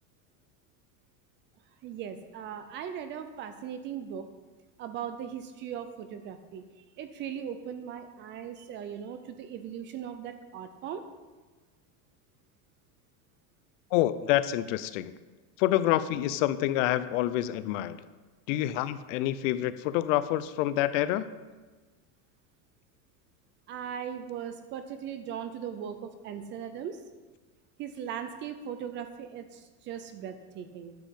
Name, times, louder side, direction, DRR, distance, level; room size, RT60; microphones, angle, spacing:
voice 1, 1.8-4.3 4.8-11.0 23.7-27.0 27.8-31.0, right 8 dB, 25° right, 9 dB, 0.4 m, -39 dB
voice 2, 13.9-15.1 15.6-18.0 18.5-21.3, left 14 dB, 60° left, 14 dB, 0.6 m, -27 dB
10.5 x 7.3 x 5.7 m, 1.3 s
supercardioid pair, 160°, 44 cm